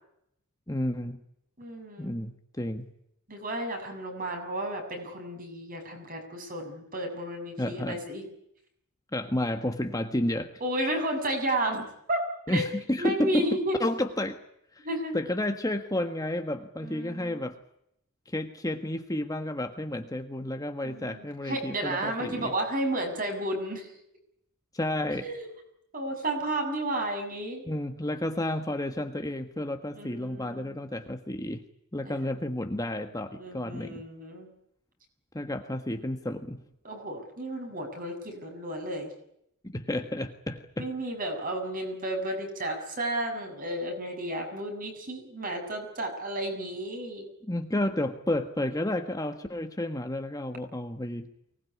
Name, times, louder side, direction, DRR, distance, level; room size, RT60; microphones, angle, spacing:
voice 1, 0.7-1.2 2.0-2.9 7.6-8.0 9.1-10.6 12.5-14.4 14.7-14.9 15.1-17.6 18.2-22.5 24.7-25.3 27.7-31.6 31.9-34.0 35.3-36.6 39.6-40.9 47.4-51.3, left 1 dB, 15° left, 6 dB, 1.5 m, -31 dB
voice 2, 1.6-2.1 3.3-8.2 10.6-12.2 12.5-12.7 13.0-13.8 14.8-15.2 16.8-17.4 20.8-23.9 25.2-25.4 25.9-27.6 29.9-30.8 32.0-32.2 33.4-34.5 36.8-39.1 40.8-47.2, right 1 dB, 40° right, 4 dB, 6.9 m, -32 dB
24.0 x 19.5 x 9.8 m, 0.76 s
head